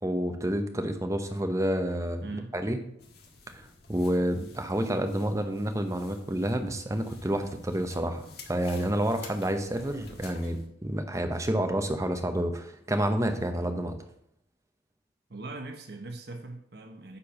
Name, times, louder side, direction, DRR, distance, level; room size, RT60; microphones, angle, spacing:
voice 1, 0.0-2.3 2.5-2.8 3.5-14.0, right 1 dB, 15° right, 6 dB, 0.8 m, -29 dB
voice 2, 2.2-2.5 15.3-17.2, right 2 dB, 60° right, 4 dB, 1.1 m, -40 dB
sound 1, 3.0-10.7, left 3 dB, 60° left, 1.6 m, -50 dB
9.9 x 4.5 x 7.1 m, 0.71 s
head